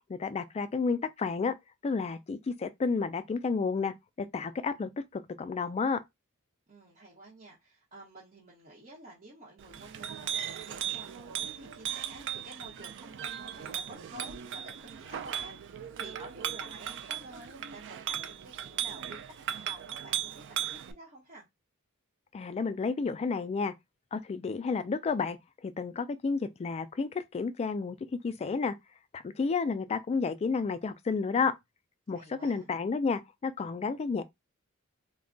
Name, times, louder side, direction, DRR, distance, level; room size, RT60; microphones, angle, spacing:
voice 1, 0.1-1.5 1.8-6.0 22.3-23.7 24.1-25.4 25.6-28.0 28.2-28.7 29.1-31.5 32.1-34.2, left 4 dB, 30° left, 0.3 m, -31 dB
voice 2, 6.7-21.4 32.1-32.7, right 1 dB, 40° right, 0.9 m, -51 dB
Chink clink, 9.6-20.9, right 10 dB, 55° right, 0.3 m, -37 dB
2.2 x 2.2 x 3.7 m
head